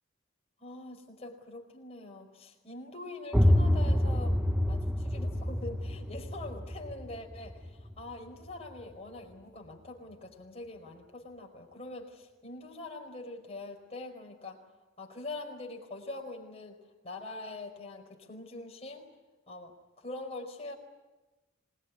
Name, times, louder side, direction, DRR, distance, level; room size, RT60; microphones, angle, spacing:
voice 1, 0.6-4.4 4.7-14.6 15.0-19.1 19.5-20.7, left 2 dB, 30° left, 1 dB, 4.8 m, -44 dB
sound 1, 3.3-8.9, left 1 dB, 5° right, 0.9 m, -28 dB
27.0 x 19.5 x 9.8 m, 1.1 s
head